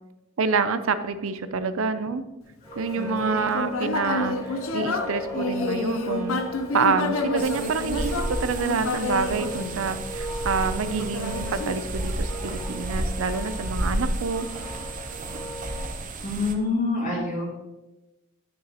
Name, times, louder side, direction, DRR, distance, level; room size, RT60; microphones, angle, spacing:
voice 1, 0.4-2.2 2.8-4.4 4.7-6.4 6.7-14.5, right 5 dB, 80° right, 11 dB, 0.5 m, -27 dB
sound 1, 2.6-15.9, left 1 dB, 15° left, 1.6 m, -38 dB
Human voice, 2.9-10.3 10.9-12.3, left 3 dB, 90° left, 0.7 m, -29 dB
sound 2, 7.4-16.5, right 2 dB, 40° right, 0.6 m, -32 dB
voice 2, 16.2-17.4, left 3 dB, 40° left, -3 dB, 2.3 m, -26 dB
9.5 x 6.2 x 2.9 m, 1.0 s
head